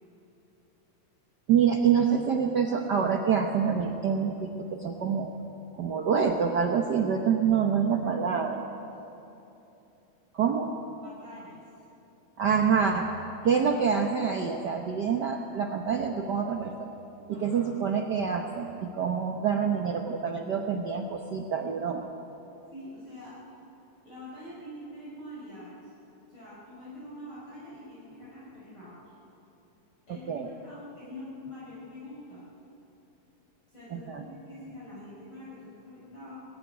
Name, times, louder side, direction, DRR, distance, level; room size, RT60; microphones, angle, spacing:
voice 1, 1.5-5.3 5.8-8.7 10.3-10.8 12.4-13.1 13.4-16.9 17.3-22.0 30.3-30.5 33.9-34.2, right 6 dB, 90° right, 3 dB, 0.9 m, -26 dB
voice 2, 11.0-11.6 17.3-17.6 22.7-23.4 24.0-25.9 26.3-29.1 30.1-32.5 33.7-36.4, left 1 dB, 40° left, -8 dB, 5.9 m, -45 dB
20.5 x 16.5 x 9.3 m, 2.9 s
omnidirectional pair, 3.4 m